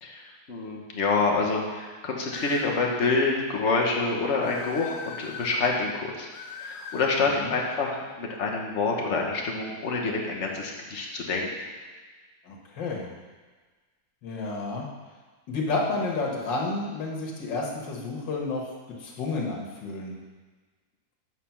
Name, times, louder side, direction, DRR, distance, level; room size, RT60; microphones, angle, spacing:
voice 1, 0.0-6.3 6.5-11.5, left 3 dB, 45° left, -1 dB, 1.3 m, -27 dB
sound 1, 2.3-2.8 4.4-5.6 6.3-7.2, left 5 dB, 65° left, 1.0 m, -40 dB
voice 2, 7.2-7.5 12.5-13.1 14.2-14.9 15.5-18.7 19.0-20.2, left 3 dB, 90° left, -1 dB, 2.0 m, -30 dB
7.8 x 5.0 x 5.8 m, 1.4 s
omnidirectional pair, 1.9 m